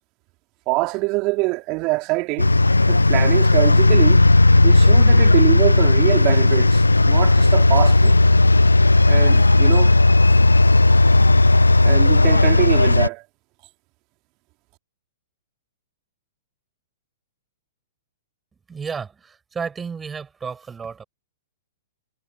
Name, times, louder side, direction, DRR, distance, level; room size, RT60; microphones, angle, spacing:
voice 1, 0.7-2.5 2.9-4.2 4.6-8.2 9.1-9.9 11.8-13.2, right 25 dB, 35° right, 3.3 m, -24 dB
sound 1, 2.4-13.1, left 2 dB, 85° left, 1.1 m, -14 dB
voice 2, 18.7-21.0, right 6 dB, 15° right, 7.9 m, -32 dB
figure-of-eight pair, 110°, 0 cm